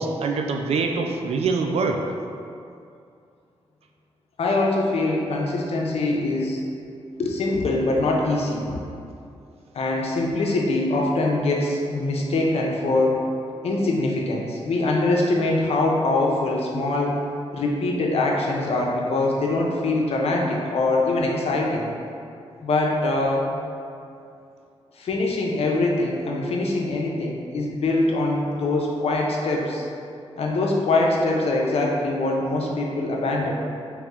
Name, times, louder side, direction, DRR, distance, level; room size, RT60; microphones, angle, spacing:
voice 1, 0.0-2.0, right 4 dB, 70° right, 3 dB, 0.4 m, -24 dB
voice 2, 4.4-6.6 7.2-8.7 9.7-13.2 13.6-17.2 17.5-21.9 22.6-23.5 25.0-29.9 30.4-33.6, left 2 dB, 70° left, -1 dB, 0.6 m, -23 dB
3.1 x 3.0 x 3.6 m, 2.5 s
cardioid pair, 75°, 11 cm